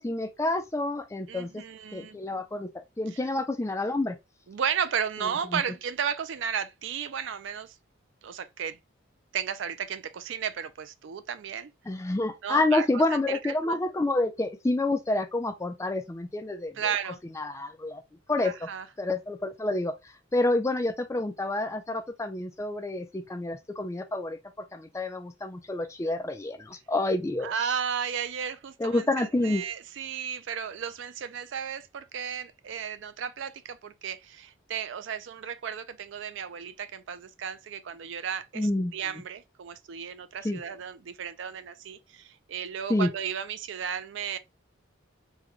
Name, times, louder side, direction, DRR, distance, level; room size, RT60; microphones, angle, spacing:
voice 1, 0.0-1.6 1.9-2.7 3.0-4.2 5.5-5.6 11.9-16.9 17.4-18.0 18.3-18.7 19.0-19.9 20.3-24.4 24.7-27.7 28.8-29.6 38.6-38.9 40.4-40.6 42.9-43.1, left 2 dB, 15° left, 0.3 m, -28 dB
voice 2, 1.3-2.2 3.1-3.2 4.5-7.8 8.2-8.8 9.3-11.7 12.4-13.8 16.8-17.2 18.4-18.9 27.4-44.4, right 7 dB, 65° right, 0.4 m, -34 dB
3.6 x 2.2 x 3.0 m
head